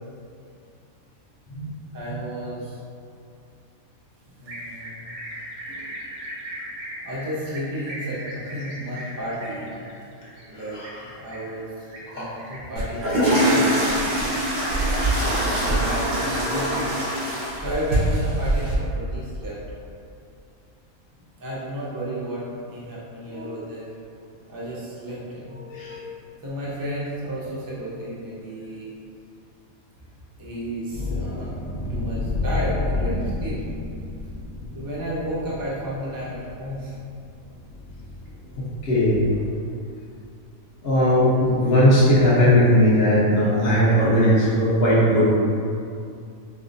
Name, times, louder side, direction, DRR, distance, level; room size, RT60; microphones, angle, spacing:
voice 1, 1.9-2.8 4.3-5.1 7.0-9.8 10.5-10.8 11.1-11.7 12.1-13.9 15.5-16.9 17.6-19.8 21.4-23.9 24.5-25.6 26.4-28.9 30.4-33.6 34.7-37.0, equal, 30° right, -7 dB, 0.4 m, -32 dB
sound 1, 4.5-15.4, right 1 dB, 70° right, 1.0 m, -39 dB
voice 2, 10.5-11.1 12.1-12.4 15.4-15.6 23.3-23.5 25.5-26.1 33.0-33.2 38.6-39.5 40.8-45.3, equal, 50° left, -8 dB, 1.0 m, -19 dB
sound 2, 12.8-18.8, right 1 dB, 85° right, 1.3 m, -23 dB
sound 3, 30.9-39.5, left 2 dB, 80° left, 1.0 m, -31 dB
5.4 x 2.0 x 2.6 m, 2.5 s
omnidirectional pair, 1.5 m